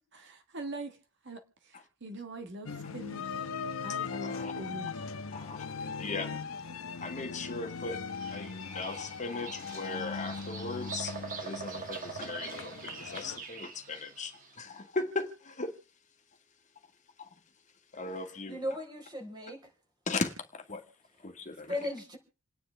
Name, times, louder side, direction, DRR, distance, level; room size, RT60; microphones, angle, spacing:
voice 1, 0.1-1.0 1.2-3.5 3.8-5.1 5.8-5.9, right 2 dB, 60° right, 1.5 m, -43 dB
sound 1, 2.7-13.4, left 5 dB, 80° left, 0.9 m, -40 dB
voice 2, 4.0-4.6 5.3-5.6 5.9-6.4 7.0-8.0 8.3-15.8 17.2-17.4 17.9-18.6 20.1-20.8 21.2-21.7, left 3 dB, 35° left, 1.6 m, -38 dB
Bird vocalization bird call bird song, 7.9-14.6, right 5 dB, 40° right, 2.1 m, -44 dB
voice 3, 18.4-19.7 21.7-22.2, left 1 dB, 20° right, 4.2 m, -36 dB
28.5 x 9.9 x 3.3 m
head